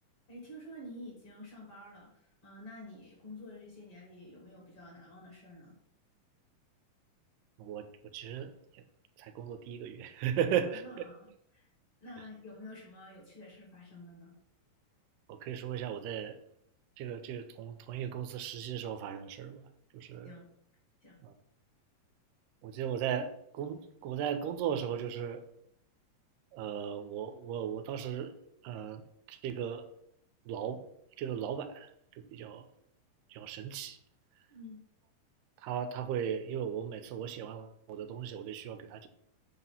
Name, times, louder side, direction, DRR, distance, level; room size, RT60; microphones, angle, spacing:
voice 1, 0.3-5.8 10.8-11.7 12.0-14.3 20.2-20.5 21.0-21.2 34.5-34.8, left 1 dB, 45° left, -3 dB, 2.6 m, -49 dB
voice 2, 8.1-8.5 9.2-10.8 15.3-16.4 17.0-19.7 19.9-20.3 21.2-21.3 22.6-25.4 26.5-28.3 28.6-29.0 29.3-29.8 30.5-30.8 31.2-31.9 32.2-32.7 33.3-34.0 35.6-39.1, right 9 dB, 85° right, 9 dB, 2.2 m, -36 dB
7.7 x 2.8 x 5.6 m, 0.75 s
omnidirectional pair, 3.8 m